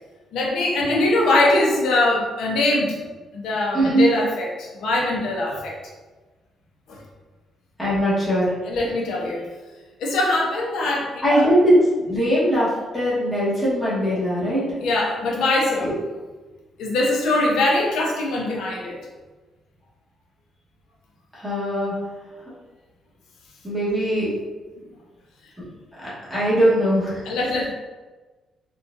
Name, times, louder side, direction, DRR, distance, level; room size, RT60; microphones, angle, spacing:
voice 1, 0.3-3.0 3.3-5.7 6.9-7.0 8.6-9.5 10.0-11.5 14.8-15.9 16.8-19.0 27.3-27.7, left 2 dB, 85° left, -2 dB, 0.6 m, -22 dB
voice 2, 3.7-4.1 7.8-8.5 11.2-14.7 15.8-15.9 21.3-21.9 23.6-24.3 26.0-27.4, equal, ahead, -10 dB, 1.2 m, -20 dB
3.8 x 2.4 x 2.5 m, 1.3 s
cardioid pair, 175°, 0 cm